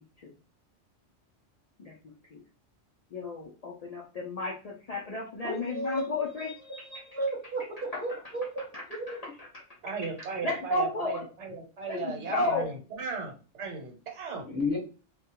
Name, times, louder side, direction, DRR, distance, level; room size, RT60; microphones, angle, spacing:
voice 1, 1.8-2.4 3.1-6.5 7.9-8.0 8.7-8.8 9.4-9.5 10.2-11.2 11.9-12.7, left 2 dB, 90° left, -1 dB, 0.3 m, -33 dB
voice 2, 5.4-8.7 9.0-9.1 14.4-14.8, equal, 10° left, -5 dB, 1.0 m, -34 dB
voice 3, 9.8-12.7 13.0-14.5, right 4 dB, 70° right, 1 dB, 1.1 m, -37 dB
2.3 x 2.1 x 2.8 m, 0.34 s
omnidirectional pair, 1.2 m